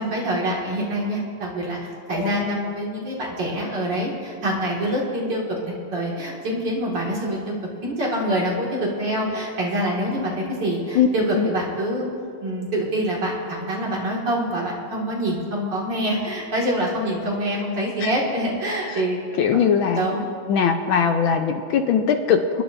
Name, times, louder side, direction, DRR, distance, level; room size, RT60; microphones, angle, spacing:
voice 1, 0.0-1.8 2.1-7.5 7.8-12.1 12.4-19.2 19.5-19.6 19.9-20.3, right 1 dB, 55° right, -4 dB, 2.7 m, -25 dB
voice 2, 2.1-2.6 10.9-11.1 11.3-11.5 18.0-18.1 18.9-19.0 19.4-20.0 20.5-22.6, left 7 dB, 75° left, 5 dB, 1.4 m, -21 dB
29.5 x 10.5 x 2.6 m, 2.3 s
omnidirectional pair, 2.4 m